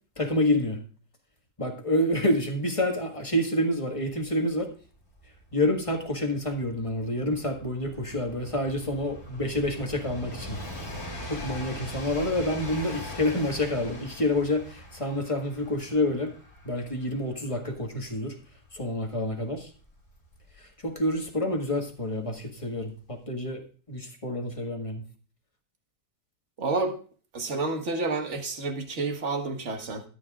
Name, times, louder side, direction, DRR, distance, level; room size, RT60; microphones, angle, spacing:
voice 1, 0.2-0.8 1.6-4.7 5.5-10.6 11.3-16.3 16.6-18.4 18.7-19.7 20.6-25.0, left 1 dB, 20° left, 3 dB, 1.6 m, -28 dB
Train, 4.2-4.3 4.5-21.1 22.1-22.2, left 1 dB, 40° left, 3.2 m, -42 dB
voice 2, 26.6-27.0 27.3-30.0, right 3 dB, 45° right, 5 dB, 1.8 m, -29 dB
14.0 x 10.5 x 2.4 m, 0.39 s
omnidirectional pair, 1.8 m